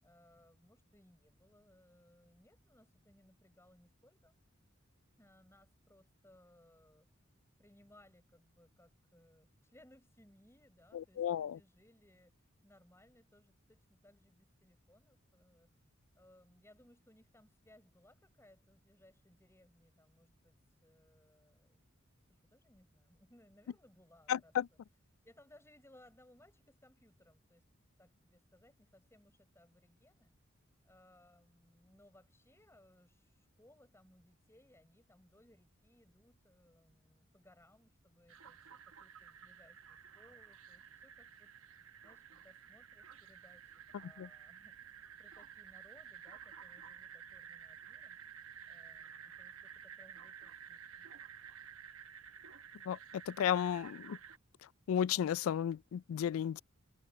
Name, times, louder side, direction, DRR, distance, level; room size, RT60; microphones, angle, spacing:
voice 1, 0.0-4.4 5.2-7.3 7.6-15.9 16.1-21.8 22.3-24.5 25.2-27.6 28.0-30.3 30.8-41.5 42.0-48.2 48.6-51.1, left 1 dB, 10° left, 6.8 m, -65 dB
voice 2, 10.9-11.6 24.3-24.7 44.2-44.3 52.9-54.2 54.9-56.6, left 9 dB, 75° left, 0.3 m, -34 dB
sound 1, 38.3-54.4, right 8 dB, 85° right, 1.0 m, -53 dB
head